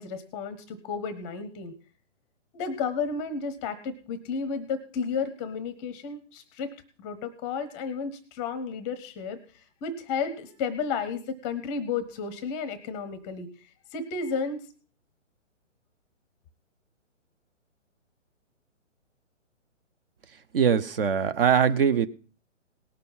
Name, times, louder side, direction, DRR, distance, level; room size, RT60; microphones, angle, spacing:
voice 1, 0.0-1.7 2.5-6.7 7.0-14.6, left 5 dB, 15° left, 0.7 m, -32 dB
voice 2, 20.5-22.1, right 7 dB, 50° right, 0.8 m, -22 dB
18.0 x 6.7 x 5.5 m
figure-of-eight pair, 140°, 38 cm